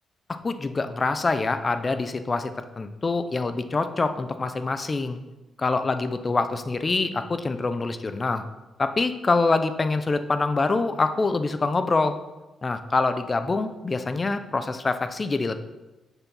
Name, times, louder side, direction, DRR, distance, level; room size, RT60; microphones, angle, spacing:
voice 1, 0.4-5.2 5.6-8.4 8.8-12.2 12.6-15.6, left 3 dB, 25° left, 10 dB, 0.6 m, -25 dB
7.3 x 7.2 x 5.5 m, 1.1 s
cardioid pair, 140°, 0 cm